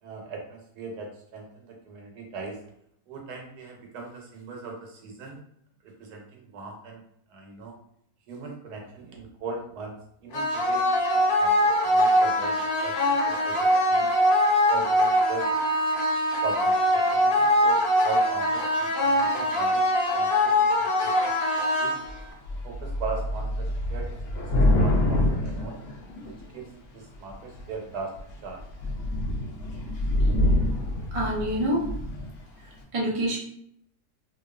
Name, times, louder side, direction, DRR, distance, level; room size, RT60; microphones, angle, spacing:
voice 1, 0.0-2.6 3.1-5.4 6.0-7.0 7.3-7.7 8.3-10.0 10.2-13.0 13.3-14.1 14.7-15.5 16.4-19.9 20.1-21.3 21.8-21.9 22.6-25.8 26.2-28.1 28.4-28.6, right 4 dB, 85° right, 0 dB, 1.2 m, -39 dB
sound 1, 10.3-22.3, equal, 90° left, 1.2 m, -22 dB
Thunder / Rain, 22.1-22.2 22.5-26.6 27.3-27.8 28.2-28.3 28.6-32.3, left 1 dB, 70° left, 0.8 m, -26 dB
voice 2, 31.1-31.9 32.9-33.4, right 1 dB, 55° right, -4 dB, 0.3 m, -26 dB
2.7 x 2.3 x 2.3 m, 0.71 s
omnidirectional pair, 1.7 m